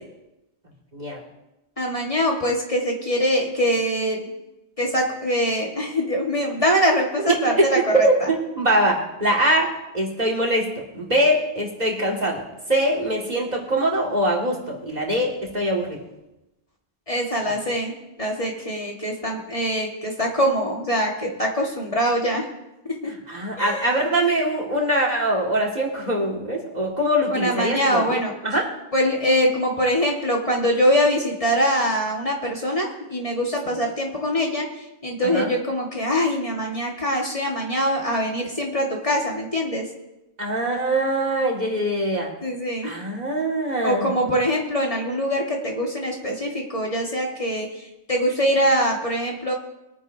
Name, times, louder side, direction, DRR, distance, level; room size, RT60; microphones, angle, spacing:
voice 1, 1.8-4.3 4.8-8.3 17.1-17.9 18.2-22.5 23.0-23.1 23.6-23.9 27.3-28.3 28.9-34.7 35.0-39.9 42.4-42.9 43.8-49.5, equal, 30° left, -1 dB, 1.7 m, -23 dB
voice 2, 7.5-9.7 9.9-10.7 10.9-12.4 12.7-16.0 17.4-17.5 23.3-28.6 35.2-35.5 40.4-42.3 42.8-44.1, right 1 dB, 40° right, -2 dB, 2.2 m, -23 dB
22.5 x 9.7 x 2.7 m, 0.96 s
omnidirectional pair, 1.1 m